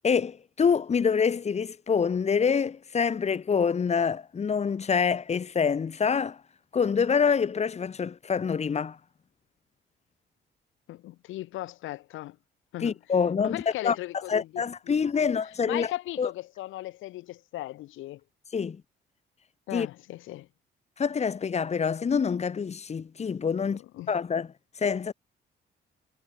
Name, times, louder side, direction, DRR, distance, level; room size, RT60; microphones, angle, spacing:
voice 1, 0.0-6.4 6.7-9.0 12.8-14.0 14.3-15.9 16.2-16.3 18.5-18.8 19.7-19.9 21.0-23.8 24.1-24.5 24.8-25.1, left 6 dB, 35° left, 0.9 m, -26 dB
voice 2, 10.9-12.4 12.7-13.0 13.4-15.3 15.7-18.2 19.7-20.5 23.6-24.1, left 16 dB, 85° left, 0.9 m, -38 dB
cardioid pair, 90°, 20 cm